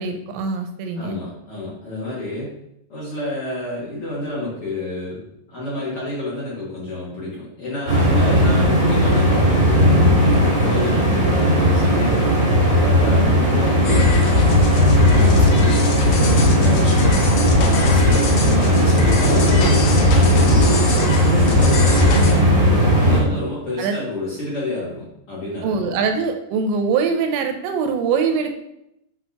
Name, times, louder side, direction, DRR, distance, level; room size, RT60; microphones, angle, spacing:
voice 1, 0.0-1.2 15.2-16.2 22.2-22.8 23.3-23.4 23.8-24.0 25.6-28.5, right 5 dB, 80° right, 5 dB, 2.8 m, -24 dB
voice 2, 0.9-2.5 2.9-5.2 5.5-14.6 15.2-15.8 16.2-17.3 17.6-19.9 20.1-21.2 21.4-22.2 23.0-25.9, left 2 dB, 45° left, -8 dB, 2.1 m, -29 dB
sound 1, 7.9-23.2, equal, 25° right, 1.7 m, -16 dB
sound 2, 13.8-22.3, left 4 dB, 80° left, 2.1 m, -22 dB
8.1 x 5.7 x 2.9 m, 0.81 s
omnidirectional pair, 5.4 m